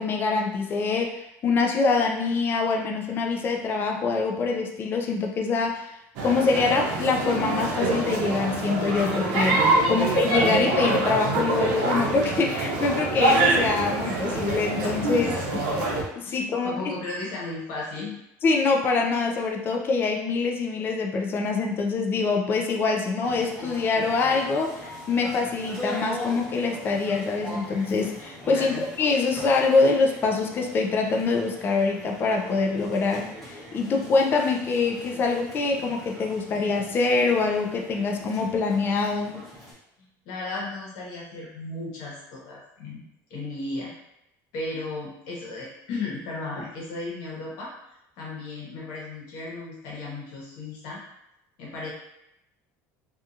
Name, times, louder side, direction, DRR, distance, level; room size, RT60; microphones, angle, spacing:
voice 1, 0.0-5.9 6.2-15.3 16.2-16.8 18.4-39.4, left 4 dB, 30° left, 2 dB, 0.4 m, -24 dB
sound 1, 6.2-16.0, right 2 dB, 75° right, 0.7 m, -25 dB
voice 2, 15.2-15.6 16.2-18.2 28.5-28.9 40.2-43.0 43.3-43.9 44.5-47.7 48.2-51.0 51.6-51.9, left 3 dB, 75° left, -4 dB, 1.1 m, -35 dB
sound 2, 23.2-39.7, equal, ahead, 0.9 m, -41 dB
2.7 x 2.4 x 2.4 m, 0.84 s
cardioid pair, 135°, 7 cm